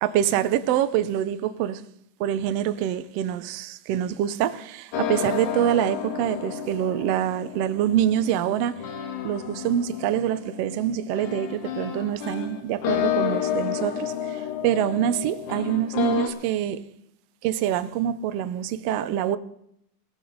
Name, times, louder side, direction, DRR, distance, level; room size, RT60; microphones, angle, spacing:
voice 1, 0.0-1.8 2.2-8.8 9.2-16.8 17.4-19.4, right 10 dB, 75° right, 1.5 m, -25 dB
sound 1, 4.9-16.3, left 9 dB, 75° left, 2.6 m, -31 dB
18.5 x 14.5 x 3.9 m
omnidirectional pair, 3.6 m